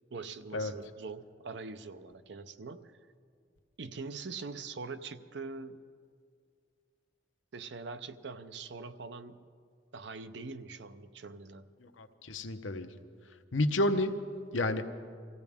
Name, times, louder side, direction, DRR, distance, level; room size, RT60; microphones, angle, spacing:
voice 1, 0.1-3.0 3.8-5.8 7.5-9.5 9.9-11.7, right 4 dB, 65° right, 11 dB, 0.7 m, -43 dB
voice 2, 11.8-12.9 13.5-14.1 14.5-14.9, left 1 dB, 85° left, 7 dB, 0.9 m, -30 dB
25.0 x 15.5 x 3.6 m, 2.2 s
head